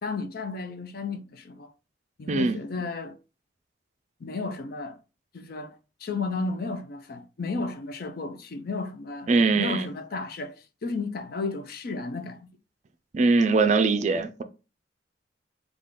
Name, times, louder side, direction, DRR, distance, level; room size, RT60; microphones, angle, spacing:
voice 1, 0.0-1.7 2.2-3.2 4.2-5.0 5.3-12.5, left 3 dB, 50° left, 0.4 m, -33 dB
voice 2, 2.3-2.6 9.3-9.9 13.1-14.4, right 3 dB, 40° right, 0.4 m, -22 dB
3.6 x 2.3 x 3.7 m
head